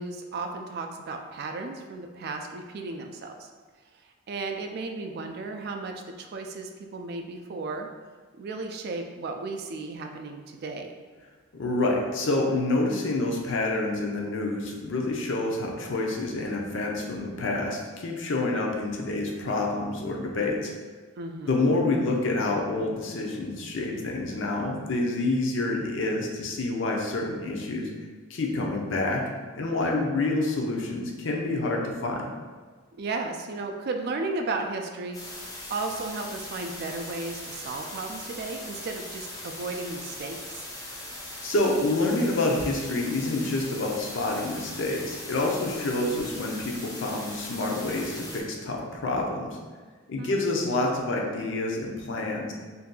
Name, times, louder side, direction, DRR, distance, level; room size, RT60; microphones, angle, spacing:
voice 1, 0.0-3.5 4.3-7.9 8.4-10.9 21.2-21.6 33.0-40.7 50.2-50.5, right 3 dB, 50° right, 4 dB, 0.3 m, -34 dB
voice 2, 11.5-20.7 21.5-27.9 28.3-29.2 29.6-32.3 41.4-49.6 50.1-52.5, left 2 dB, 65° left, 0 dB, 0.5 m, -28 dB
sound 1, 35.1-48.4, left 1 dB, 20° left, 0.6 m, -40 dB
2.6 x 2.3 x 3.6 m, 1.4 s
head